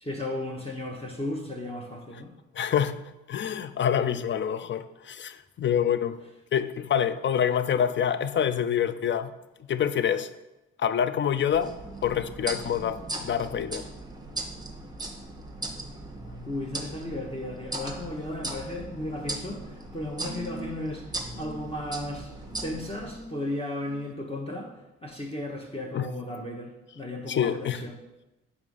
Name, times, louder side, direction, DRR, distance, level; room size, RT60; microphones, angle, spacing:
voice 1, 0.0-2.3 16.5-21.1 21.4-22.3 22.6-28.0, left 1 dB, 15° left, 1.0 m, -35 dB
voice 2, 2.6-3.0 3.3-6.2 6.5-9.3 9.7-10.3 10.8-13.9 25.9-26.1 27.3-27.8, left 8 dB, 35° left, 0.4 m, -26 dB
sound 1, 11.5-23.2, right 2 dB, 10° right, 1.0 m, -38 dB
sound 2, 18.9-19.5 20.2-20.9 21.3-21.8 22.5-24.1 25.3-25.4, right 2 dB, 40° right, 0.7 m, -45 dB
4.9 x 3.6 x 5.3 m
hypercardioid pair, 40°, 35 cm